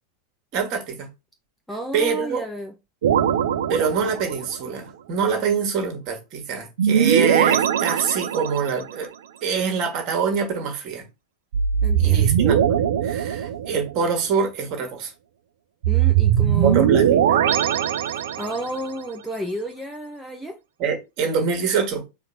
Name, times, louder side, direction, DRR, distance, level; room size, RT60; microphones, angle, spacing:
voice 1, 0.5-1.1 1.9-2.4 3.7-9.1 9.4-11.0 12.0-15.1 16.6-17.4 20.8-22.0, right 6 dB, 40° right, 1.5 m, -25 dB
voice 2, 1.7-2.7 11.8-12.3 15.9-16.8 18.1-20.6, equal, ahead, 0.6 m, -32 dB
sound 1, 3.0-4.6 6.8-8.8 11.5-14.0 15.8-18.8, right 9 dB, 60° right, 0.4 m, -20 dB
4.3 x 2.6 x 4.0 m
figure-of-eight pair, 90°, 0 cm